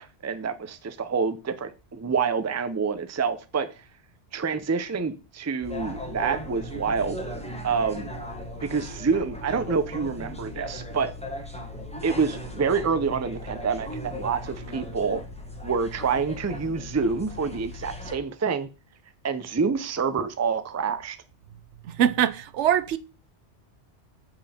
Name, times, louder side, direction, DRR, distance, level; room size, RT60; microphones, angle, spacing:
voice 1, 0.0-3.7 4.3-7.2 7.6-8.1 8.6-11.1 12.0-15.2 15.6-18.7 19.2-21.2, right 5 dB, 20° right, 0.4 m, -27 dB
sound 1, 5.6-18.1, left 1 dB, 5° left, 1.2 m, -37 dB
voice 2, 21.8-23.0, right 10 dB, 85° right, 1.0 m, -23 dB
7.5 x 5.8 x 4.3 m
omnidirectional pair, 1.2 m